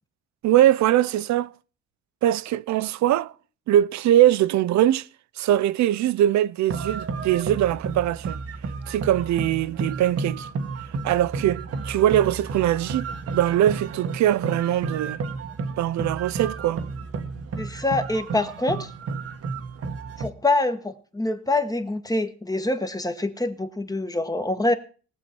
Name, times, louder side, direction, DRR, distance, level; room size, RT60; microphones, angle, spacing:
voice 1, 0.4-1.5 2.2-3.3 3.7-5.1 5.4-8.4 8.9-10.5 11.0-15.2 15.8-16.8, right 12 dB, 65° right, 0.5 m, -22 dB
sound 1, 6.7-20.3, right 4 dB, 50° right, 1.1 m, -32 dB
voice 2, 17.6-18.9 20.2-24.7, left 2 dB, 10° left, 1.3 m, -25 dB
20.0 x 7.1 x 4.4 m
cardioid pair, 90°, 30 cm